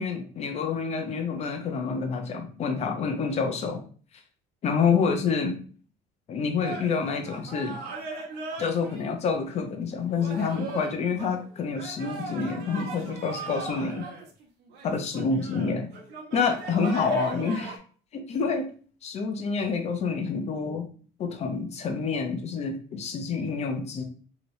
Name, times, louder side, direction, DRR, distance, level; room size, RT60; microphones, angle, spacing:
voice 1, 0.0-3.9 4.6-5.6 6.3-7.7 8.6-14.1 14.8-15.9 16.3-17.8 18.1-18.7 19.0-20.8 21.2-24.0, left 5 dB, 35° left, 5 dB, 0.6 m, -28 dB
sound 1, 6.6-9.0 9.6-9.7 10.2-17.8, right 4 dB, 65° right, 0.9 m, -39 dB
3.0 x 2.9 x 2.6 m, 0.42 s
cardioid pair, 135°, 18 cm